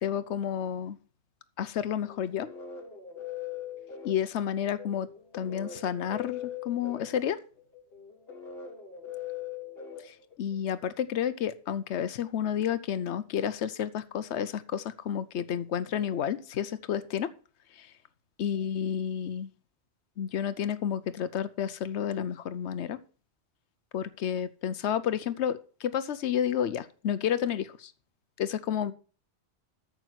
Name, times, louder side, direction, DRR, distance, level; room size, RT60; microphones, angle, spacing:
voice 1, 0.0-1.0 1.6-2.5 4.0-5.1 5.3-7.4 10.0-17.3 17.7-17.9 18.4-19.5 20.2-23.0 23.9-27.9 28.4-28.9, left 9 dB, 90° left, 14 dB, 1.0 m, -31 dB
sound 1, 2.0-10.7, left 9 dB, 60° left, 1.9 m, -41 dB
9.0 x 6.9 x 6.2 m, 0.38 s
omnidirectional pair, 1.1 m